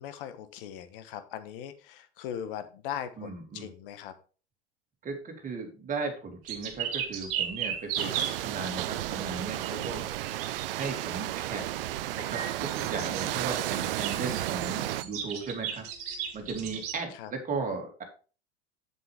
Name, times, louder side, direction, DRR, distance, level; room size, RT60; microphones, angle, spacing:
voice 1, 0.0-4.1 16.5-16.7 17.1-17.3, left 9 dB, 55° left, 10 dB, 1.3 m, -40 dB
voice 2, 3.2-3.7 5.0-10.0 10.7-11.9 12.1-15.9 16.3-18.0, right 4 dB, 25° right, 2 dB, 2.8 m, -36 dB
sound 1, 6.5-11.0 12.1-16.9, right 8 dB, 45° right, 2.3 m, -36 dB
sound 2, 8.0-15.0, right 15 dB, 60° right, 0.6 m, -33 dB
8.6 x 7.6 x 3.5 m, 0.36 s
figure-of-eight pair, 90°, 33 cm